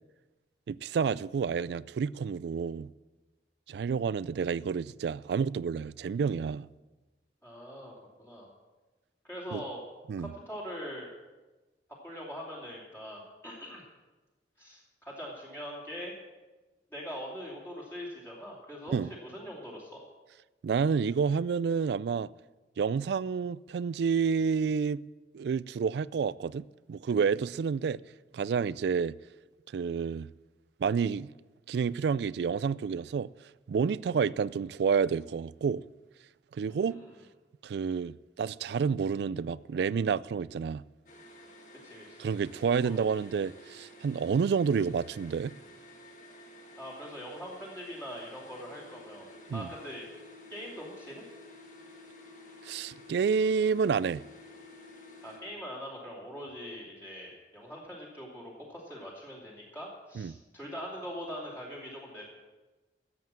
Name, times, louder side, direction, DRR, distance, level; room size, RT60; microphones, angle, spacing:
voice 1, 0.7-2.9 3.7-6.7 9.5-9.6 10.1-10.3 18.9-19.1 20.6-22.3 22.8-25.0 25.3-28.0 28.3-29.2 29.7-30.3 30.8-31.3 31.7-33.3 33.7-35.8 36.5-37.0 37.6-40.8 42.2-45.5 49.5-49.7 52.7-54.2 60.2-60.4, right 6 dB, 70° right, 0.3 m, -29 dB
voice 2, 7.4-7.9 8.2-8.5 9.2-9.8 10.2-11.1 12.0-13.8 14.6-16.1 16.9-20.0 36.7-37.1 41.8-42.3 42.8-43.3 46.8-50.1 50.5-51.2 55.2-62.2, equal, 15° left, 2.7 m, -42 dB
sound 1, 41.1-55.4, left 1 dB, 45° left, 1.8 m, -52 dB
13.0 x 7.9 x 7.4 m
head